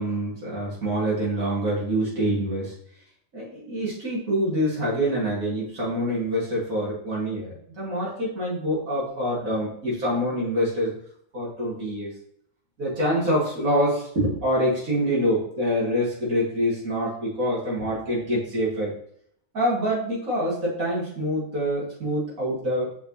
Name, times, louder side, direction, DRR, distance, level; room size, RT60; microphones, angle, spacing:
voice 1, 0.0-2.7 3.3-10.9 11.3-12.1 12.8-18.9 19.5-22.9, equal, 85° right, -7 dB, 2.9 m, -26 dB
6.9 x 4.8 x 3.1 m, 0.68 s
omnidirectional pair, 1.4 m